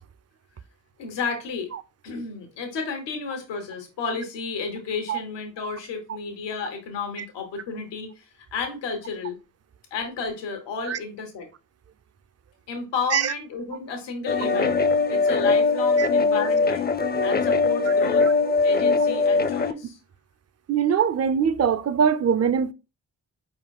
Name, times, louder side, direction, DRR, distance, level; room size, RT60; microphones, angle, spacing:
voice 1, 1.0-1.7 2.0-8.3 8.5-9.4 9.9-11.5 12.7-14.8 15.1-16.9 17.2-18.3 18.6-20.0, left 5 dB, 85° left, 1.0 m, -32 dB
sound 1, 14.3-19.7, left 4 dB, 25° left, 0.5 m, -21 dB
voice 2, 20.7-22.7, right 7 dB, 40° right, 0.5 m, -22 dB
4.5 x 3.8 x 2.2 m
supercardioid pair, 40°, 41 cm